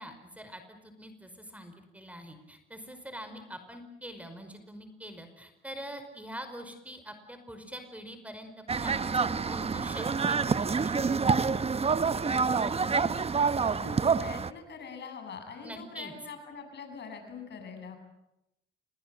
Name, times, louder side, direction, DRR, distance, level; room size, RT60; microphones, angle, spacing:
voice 1, 0.0-8.5 8.7-11.1 15.6-16.1, equal, 5° right, 8 dB, 5.2 m, -44 dB
sound 1, 8.7-14.5, right 5 dB, 30° right, 1.0 m, -27 dB
voice 2, 12.0-13.5 13.8-18.0, left 5 dB, 60° left, 6 dB, 7.9 m, -45 dB
29.5 x 24.0 x 7.8 m, 0.89 s
cardioid pair, 90°, 20 cm